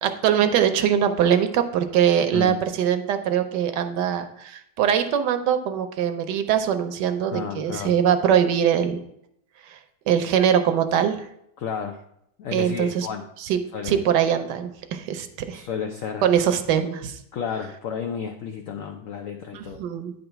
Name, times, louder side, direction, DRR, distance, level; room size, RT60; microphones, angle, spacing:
voice 1, 0.0-9.0 9.7-9.8 10.1-11.2 12.5-13.1 13.4-15.6 16.2-17.2 19.5-20.1, right 9 dB, 75° right, 8 dB, 1.2 m, -22 dB
voice 2, 7.3-7.9 11.6-12.0 12.4-13.3 13.7-14.0 15.5-16.3 17.3-19.8, left 7 dB, 85° left, 4 dB, 0.7 m, -32 dB
9.3 x 4.0 x 4.4 m, 0.75 s
omnidirectional pair, 2.0 m